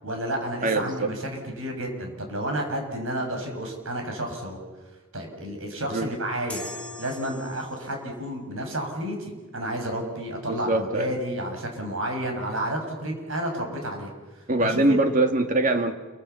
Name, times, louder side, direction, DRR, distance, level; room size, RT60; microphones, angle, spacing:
voice 1, 0.0-4.6 5.1-6.7 7.0-14.1 14.6-15.0, right 1 dB, 75° right, 3 dB, 7.0 m, -31 dB
voice 2, 0.6-1.1 5.9-6.1 10.5-11.1 14.5-16.0, right 2 dB, 40° right, 6 dB, 2.2 m, -23 dB
sound 1, 6.5-8.0, left 2 dB, 5° left, 7.5 m, -40 dB
28.0 x 25.0 x 7.1 m, 1.3 s
head